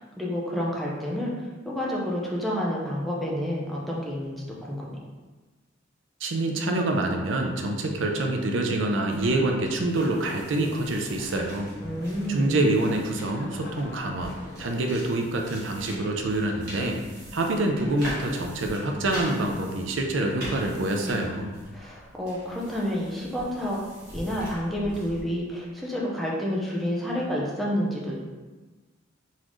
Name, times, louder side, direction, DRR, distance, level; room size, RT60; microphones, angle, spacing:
voice 1, 0.0-4.9 11.8-12.6 21.7-23.8 24.1-28.2, equal, ahead, -5 dB, 0.6 m, -29 dB
voice 2, 6.2-11.7 12.3-17.0 17.3-21.5, right 2 dB, 80° right, 2 dB, 0.6 m, -26 dB
sound 1, 9.1-25.2, equal, 55° right, 1.4 m, -43 dB
sound 2, 9.8-14.9, left 1 dB, 55° left, 0.5 m, -45 dB
4.1 x 3.7 x 3.1 m, 1.3 s
head